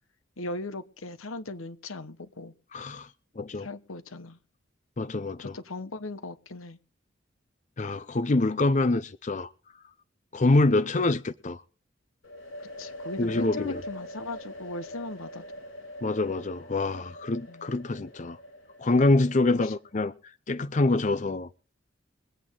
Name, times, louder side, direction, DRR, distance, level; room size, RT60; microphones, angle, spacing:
voice 1, 0.4-2.5 3.5-4.4 5.4-6.8 12.6-15.4 17.5-17.7 19.5-19.7, left 2 dB, 90° left, 1.2 m, -38 dB
voice 2, 2.7-3.1 3.4-3.7 5.0-5.5 7.8-9.5 10.3-11.6 13.2-13.8 16.0-18.4 18.8-20.1 20.5-21.5, left 2 dB, 35° left, 0.5 m, -25 dB
sound 1, 12.2-19.9, equal, 75° left, 3.9 m, -43 dB
23.0 x 8.6 x 3.8 m
head